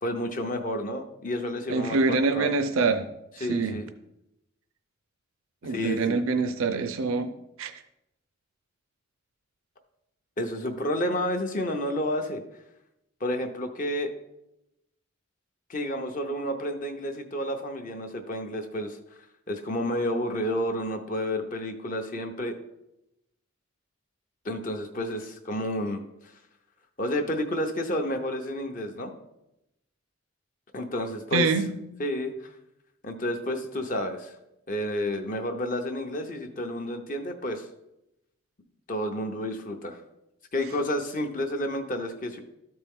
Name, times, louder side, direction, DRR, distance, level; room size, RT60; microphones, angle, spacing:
voice 1, 0.0-2.5 3.4-3.9 5.7-6.2 10.4-12.4 13.2-14.1 15.7-19.0 19.5-22.5 24.4-26.3 27.0-29.1 30.7-31.5 32.0-32.5 33.0-34.4 34.7-37.7 38.9-40.0 40.5-42.4, left 1 dB, 40° left, 4 dB, 0.7 m, -30 dB
voice 2, 1.7-3.1 3.4-3.8 5.6-7.3 7.6-7.7 31.3-31.7, right 4 dB, 75° right, 9 dB, 0.5 m, -25 dB
13.0 x 4.4 x 3.6 m, 0.87 s
head